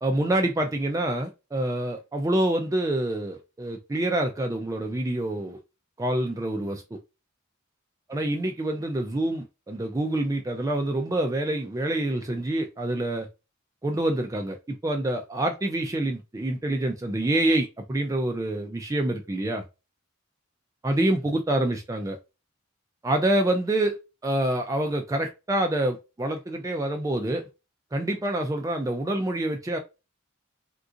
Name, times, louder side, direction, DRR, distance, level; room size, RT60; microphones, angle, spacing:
voice 1, 0.0-5.6 6.0-6.8 8.1-13.3 13.8-19.6 20.8-22.2 23.0-24.0 24.2-27.4 27.9-29.8, right 1 dB, 15° right, 0.3 m, -26 dB
3.7 x 2.4 x 2.5 m
head